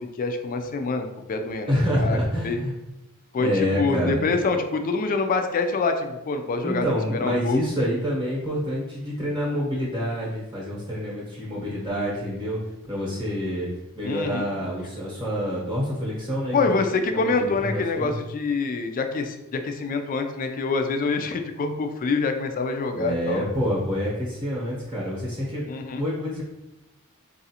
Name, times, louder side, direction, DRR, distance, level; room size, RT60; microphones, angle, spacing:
voice 1, 0.0-1.7 2.0-2.2 2.4-2.6 3.3-6.8 7.1-7.6 14.0-14.5 16.5-23.4 25.7-26.0, left 4 dB, 40° left, 6 dB, 0.3 m, -26 dB
voice 2, 1.7-2.8 3.4-4.3 6.6-12.6 12.9-13.7 13.9-16.5 17.1-18.2 22.9-25.6 25.9-26.4, equal, 20° right, -5 dB, 0.8 m, -27 dB
3.9 x 2.4 x 2.8 m, 0.97 s
head